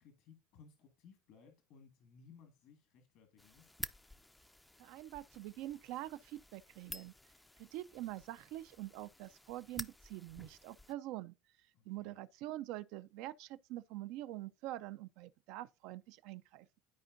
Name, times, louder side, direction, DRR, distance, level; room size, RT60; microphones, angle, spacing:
voice 1, 0.0-3.7 8.0-8.2 11.7-12.2, left 6 dB, 65° left, 1.6 m, -61 dB
sound 1, 3.4-10.9, left 1 dB, 10° left, 0.4 m, -51 dB
voice 2, 4.8-7.1 7.6-11.3 11.9-16.8, right 15 dB, 70° right, 0.4 m, -45 dB
13.0 x 4.3 x 2.6 m
supercardioid pair, 90°, 0 cm